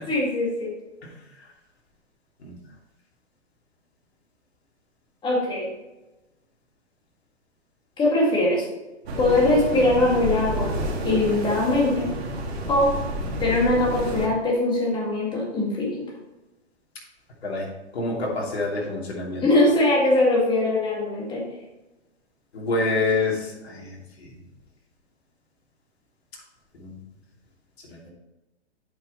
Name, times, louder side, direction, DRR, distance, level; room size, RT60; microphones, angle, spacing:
voice 1, 0.1-0.7 5.2-5.7 8.0-8.7 9.2-10.7 11.0-12.1 12.7-13.0 13.4-16.0 19.4-21.4, left 2 dB, 15° left, -3 dB, 2.1 m, -21 dB
sound 1, 9.0-14.3, equal, 65° right, 2.2 m, -29 dB
voice 2, 17.9-19.4 22.5-24.3 26.8-26.9 27.9-28.1, left 3 dB, 65° left, -3 dB, 2.9 m, -27 dB
8.3 x 5.5 x 4.2 m, 1.1 s
hypercardioid pair, 135°, 34 cm